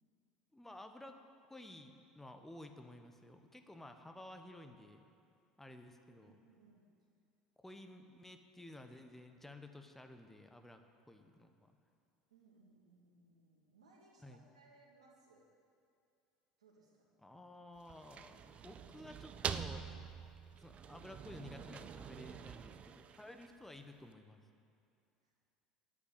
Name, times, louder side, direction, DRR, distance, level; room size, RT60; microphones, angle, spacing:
voice 1, 0.5-1.2 1.5-5.0 5.6-6.3 7.6-10.8 11.1-11.7 14.2-14.4 17.2-19.9 20.5-24.4, left 1 dB, 10° left, 6 dB, 1.2 m, -53 dB
voice 2, 6.0-6.9 12.3-15.5 16.6-17.1 25.2-25.3, right 3 dB, 80° right, -4 dB, 2.1 m, -66 dB
sound 1, 17.8-23.8, right 7 dB, 35° right, 0.6 m, -46 dB
10.0 x 8.4 x 8.6 m, 2.5 s
hypercardioid pair, 70°, 3 cm